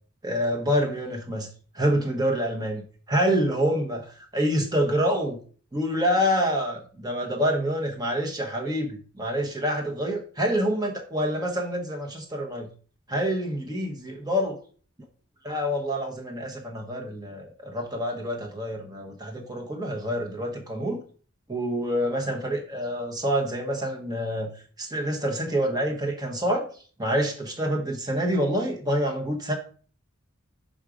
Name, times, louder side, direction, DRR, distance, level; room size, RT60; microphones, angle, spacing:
voice 1, 0.2-1.5 1.7-5.4 5.7-12.7 13.1-14.5 15.4-21.0 21.5-24.5 24.8-26.6 27.0-29.6, equal, 20° right, 1 dB, 0.9 m, -27 dB
6.4 x 3.8 x 4.8 m, 0.42 s
head